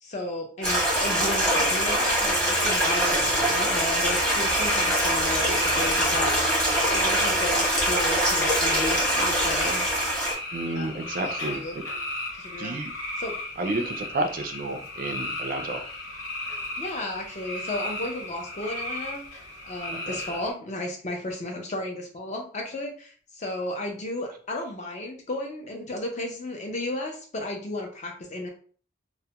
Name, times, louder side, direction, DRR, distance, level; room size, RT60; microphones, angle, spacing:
voice 1, 0.0-6.5 6.7-9.8 10.7-10.9 11.2-11.8 12.4-12.8 13.2-13.4 13.7-13.9 16.8-19.2 19.6-28.5, left 1 dB, 35° left, 2 dB, 0.5 m, -34 dB
Stream, 0.6-10.3, equal, 5° left, 0.8 m, -23 dB
sound 1, 1.5-20.5, left 2 dB, 80° left, 1.2 m, -35 dB
voice 2, 10.5-11.6 12.6-12.9 13.6-15.8 19.9-20.2, right 2 dB, 45° right, 5 dB, 0.3 m, -31 dB
2.2 x 2.1 x 2.8 m, 0.43 s
head